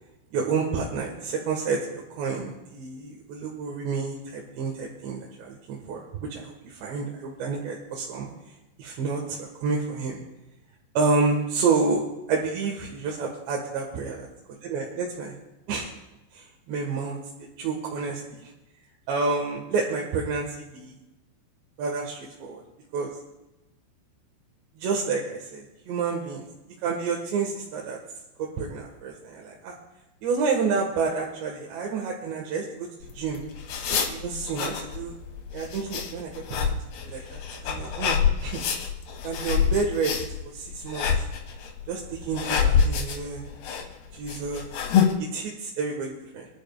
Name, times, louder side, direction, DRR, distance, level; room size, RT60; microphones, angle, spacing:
voice 1, 0.3-6.0 6.3-8.3 8.8-10.2 11.0-12.0 12.3-14.2 14.6-15.3 15.7-15.9 16.3-17.2 17.6-18.4 19.1-21.0 21.8-22.6 22.9-23.1 24.8-26.5 26.8-28.0 28.4-29.7 30.2-32.9 33.2-33.4 33.9-35.1 35.5-36.3 36.6-36.8 37.1-38.6 39.2-40.2 40.5-41.1 41.9-43.4 43.7-43.8 44.2-44.6 45.2-46.5, right 4 dB, 65° right, -2 dB, 3.5 m, -29 dB
sound 1, 33.0-45.1, left 7 dB, 65° left, 3.1 m, -27 dB
24.5 x 11.5 x 2.4 m, 0.97 s
omnidirectional pair, 5.9 m